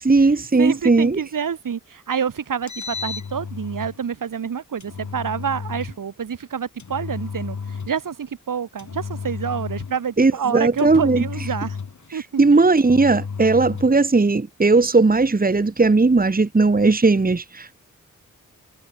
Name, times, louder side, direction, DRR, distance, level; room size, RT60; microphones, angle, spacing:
voice 1, 0.0-1.2 10.2-11.2 12.1-17.8, right 3 dB, 30° right, 1.8 m, -17 dB
voice 2, 0.6-7.6 7.9-11.8 12.1-12.4, right 7 dB, 85° right, 5.3 m, -27 dB
Engine, 2.5-4.0 4.8-6.0 6.8-8.1 8.8-10.1 10.8-12.1 12.8-14.0, left 5 dB, 65° left, 7.1 m, -32 dB
cardioid pair, 70°, 32 cm